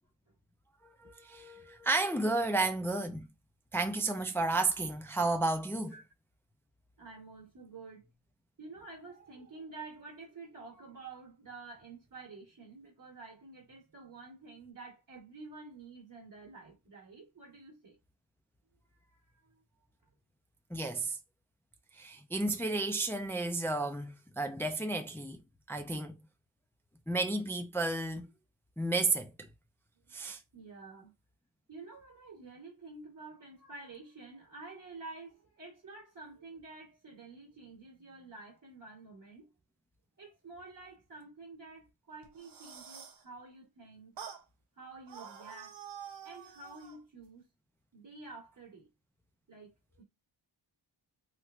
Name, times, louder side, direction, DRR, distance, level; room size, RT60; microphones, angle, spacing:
voice 1, 1.0-3.3 3.7-6.0 20.7-21.2 21.9-25.4 25.7-26.1 27.1-28.3 28.8-29.5 30.1-30.4, right 2 dB, 5° left, 0.3 m, -32 dB
voice 2, 7.0-8.1 8.6-18.0 19.0-19.6 30.1-30.2 30.5-31.1 31.7-39.5 40.2-44.2 44.8-45.8 46.2-47.5 47.9-48.9 49.5-50.0, right 3 dB, 45° right, 1.1 m, -50 dB
sound 1, 42.2-43.2 44.2-44.4 45.1-47.0, right 8 dB, 60° right, 0.7 m, -47 dB
3.2 x 2.9 x 2.4 m
wide cardioid pair, 90°, 47 cm